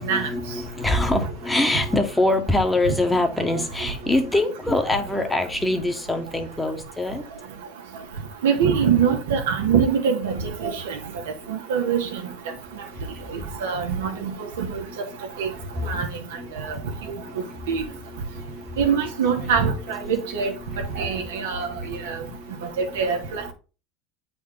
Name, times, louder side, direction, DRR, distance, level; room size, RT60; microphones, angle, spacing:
voice 1, 0.0-7.2 11.8-11.9 12.5-13.6 14.2-14.3 14.9-15.0 15.3-16.1 16.4-19.5 20.0-23.0 23.4-23.5, left 2 dB, 10° left, 1.4 m, -26 dB
voice 2, 8.4-11.0 11.5-12.2 13.6-14.3 14.6-14.8 15.4-15.5 15.9-16.1 16.7-16.8 17.7-17.8 18.8-20.5 21.0-22.2 22.8-23.5, right 6 dB, 85° right, 1.6 m, -23 dB
8.3 x 4.3 x 3.9 m
hypercardioid pair, 95°, 0 cm